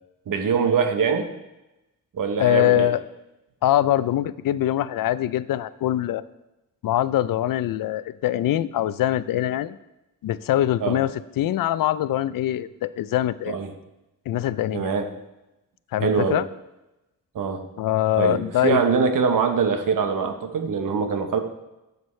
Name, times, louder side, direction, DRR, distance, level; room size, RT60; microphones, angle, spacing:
voice 1, 0.3-1.3 2.1-2.9 10.8-11.0 13.5-13.7 14.7-15.1 16.0-16.4 17.3-17.7 18.2-21.4, right 5 dB, 75° right, 6 dB, 1.1 m, -23 dB
voice 2, 2.4-3.0 3.6-6.2 6.8-9.8 10.2-11.1 11.4-13.5 14.3-14.9 15.9-16.4 17.8-18.8, left 13 dB, 85° left, 16 dB, 0.5 m, -23 dB
12.5 x 8.0 x 3.2 m, 0.97 s
cardioid pair, 105°, 33 cm